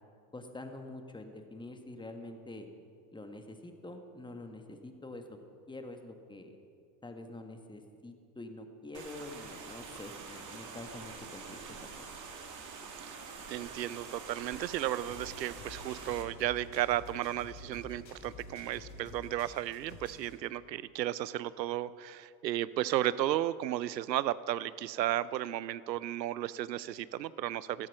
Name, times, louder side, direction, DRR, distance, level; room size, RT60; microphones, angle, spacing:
voice 1, 0.3-2.7 3.1-5.4 5.7-6.6 7.0-11.8, left 2 dB, 10° left, 6 dB, 1.6 m, -46 dB
sound 1, 8.9-16.2, right 5 dB, 35° right, 2.6 m, -46 dB
voice 2, 13.5-27.9, right 13 dB, 85° right, 18 dB, 0.6 m, -34 dB
sound 2, 15.1-20.4, left 3 dB, 85° left, 2.3 m, -50 dB
14.5 x 13.0 x 6.0 m, 2.4 s
hypercardioid pair, 80°, 49 cm